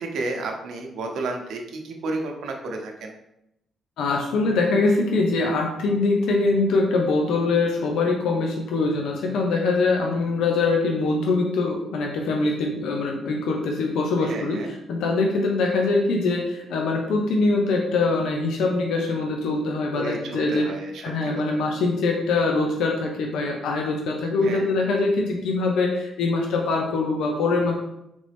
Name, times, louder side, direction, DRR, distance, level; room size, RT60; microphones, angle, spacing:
voice 1, 0.0-3.2 14.2-14.7 19.9-21.6 24.4-24.7, right 2 dB, 75° right, 3 dB, 0.7 m, -32 dB
voice 2, 4.0-14.6 14.9-20.7 21.0-27.7, left 3 dB, 80° left, 1 dB, 0.7 m, -23 dB
3.8 x 3.4 x 3.4 m, 0.84 s
cardioid pair, 90°, 0 cm